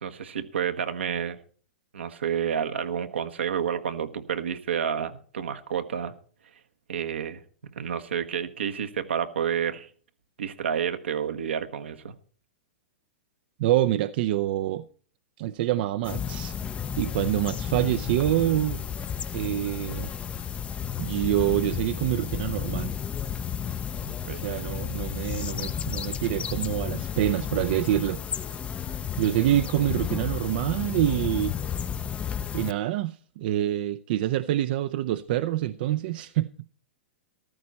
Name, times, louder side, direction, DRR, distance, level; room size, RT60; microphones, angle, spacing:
voice 1, 0.0-1.4 1.9-6.1 6.9-7.4 7.8-9.9 10.4-12.1 24.3-24.5, right 8 dB, 80° right, 1.2 m, -29 dB
voice 2, 13.6-14.9 15.4-16.5 17.0-18.8 19.3-20.1 21.0-22.9 24.2-28.2 29.2-31.6 32.5-36.5, right 13 dB, 55° right, 0.5 m, -26 dB
sound 1, 16.0-32.7, left 8 dB, 20° left, 0.5 m, -32 dB
14.0 x 13.0 x 4.1 m
hypercardioid pair, 115°, 6 cm